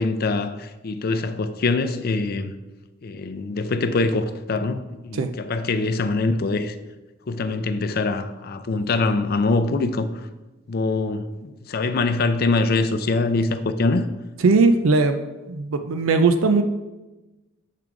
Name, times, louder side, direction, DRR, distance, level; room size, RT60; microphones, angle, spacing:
voice 1, 0.0-2.5 3.0-6.8 7.3-10.1 10.7-14.1, left 3 dB, 50° left, 0.5 m, -23 dB
voice 2, 14.4-15.2 15.5-16.6, right 3 dB, 85° right, 0.5 m, -18 dB
7.4 x 3.8 x 4.6 m
head